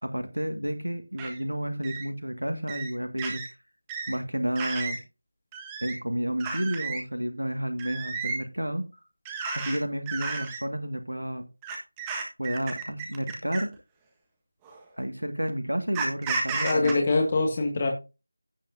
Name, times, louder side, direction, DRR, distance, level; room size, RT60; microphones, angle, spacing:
voice 1, 0.0-3.4 4.1-5.0 5.8-8.9 9.6-11.4 12.4-13.7 15.0-16.9, equal, 90° right, 7 dB, 1.8 m, -31 dB
sound 1, 1.2-1.3 1.8-2.0 2.7-2.9 3.2-3.5 3.9-4.1 4.6-5.0 5.5-5.9 6.4-7.0 7.8-8.4 9.2-9.8 10.1-10.6 11.6-13.7 14.6-14.8 15.9-16.9, right 4 dB, 10° right, 1.4 m, -33 dB
voice 2, 16.6-17.9, left 3 dB, 30° left, 2 dB, 1.8 m, -24 dB
16.5 x 5.5 x 2.6 m, 0.28 s
figure-of-eight pair, 170°, 0 cm